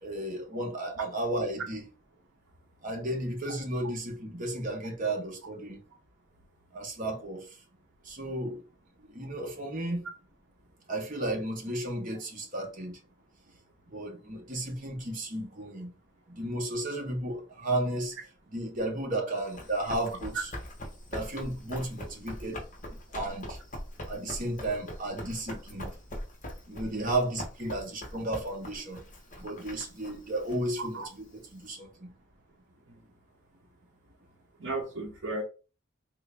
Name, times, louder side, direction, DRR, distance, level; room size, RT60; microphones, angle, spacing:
voice 1, 0.0-1.9 2.8-5.8 6.7-7.4 8.0-8.6 9.0-10.0 10.9-13.0 13.9-15.9 16.3-18.1 18.5-20.5 21.1-22.6 23.1-23.6 24.1-25.9 26.7-29.0 29.4-32.1, right 1 dB, 40° right, 1.0 m, -33 dB
Run, 19.4-31.6, left 1 dB, 40° left, 0.9 m, -42 dB
voice 2, 34.6-35.4, right 2 dB, 70° right, 0.8 m, -35 dB
3.5 x 2.5 x 3.4 m
head